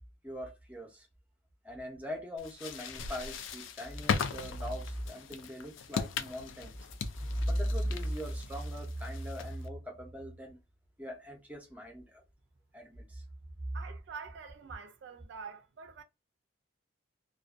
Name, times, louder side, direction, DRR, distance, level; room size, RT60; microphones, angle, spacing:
voice 1, 0.2-1.1 1.6-6.8 7.4-10.6 11.0-12.2 12.7-13.2, equal, 10° right, 0.6 m, -38 dB
sound 1, 2.4-9.7, left 6 dB, 90° left, 0.3 m, -38 dB
voice 2, 13.7-16.0, right 5 dB, 65° right, 0.3 m, -46 dB
2.5 x 2.1 x 2.3 m
head